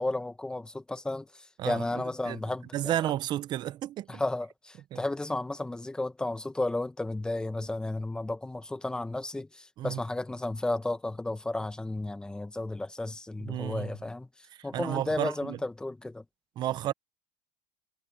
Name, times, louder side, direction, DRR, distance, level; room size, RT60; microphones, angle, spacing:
voice 1, 0.0-2.9 4.1-14.3 14.6-16.2, left 2 dB, 5° left, 1.3 m, -33 dB
voice 2, 1.6-2.4 2.7-4.2 4.9-5.0 9.8-10.0 13.4-13.9 14.5-15.6 16.6-16.9, right 12 dB, 40° right, 0.7 m, -32 dB
supercardioid pair, 125°, 11 cm